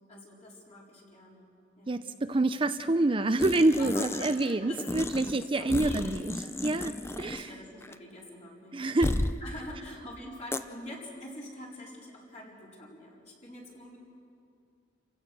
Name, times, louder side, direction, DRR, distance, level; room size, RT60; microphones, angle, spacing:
voice 1, 0.0-2.0 3.8-4.9 5.6-6.5 7.2-9.0 9.4-14.0, left 1 dB, 40° left, -4 dB, 4.4 m, -45 dB
voice 2, 1.9-6.3 6.6-7.5 8.7-9.2, right 2 dB, 30° right, 9 dB, 0.6 m, -27 dB
sound 1, 3.4-4.5 4.8-7.6 7.8-8.0 9.0-9.4 10.5-10.6, left 1 dB, 15° left, 0.6 m, -33 dB
29.0 x 16.0 x 6.2 m, 2.5 s
head